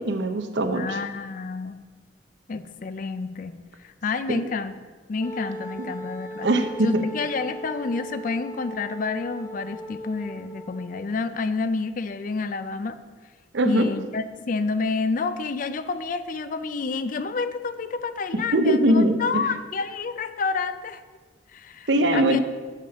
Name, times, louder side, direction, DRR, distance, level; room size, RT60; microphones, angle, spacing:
voice 1, 0.0-1.0 4.3-4.4 5.8-5.9 6.4-7.1 13.5-13.9 18.5-19.5 21.9-22.4, right 1 dB, 80° right, 7 dB, 0.7 m, -21 dB
voice 2, 0.7-1.8 2.5-3.6 3.8-4.7 5.1-6.5 6.8-13.0 13.6-21.0 21.5-22.4, left 4 dB, 50° left, 12 dB, 0.4 m, -29 dB
Wind instrument woodwind instrument, 5.2-11.2, right 1 dB, 15° left, 1.0 m, -38 dB
7.5 x 5.0 x 5.6 m, 1.4 s
head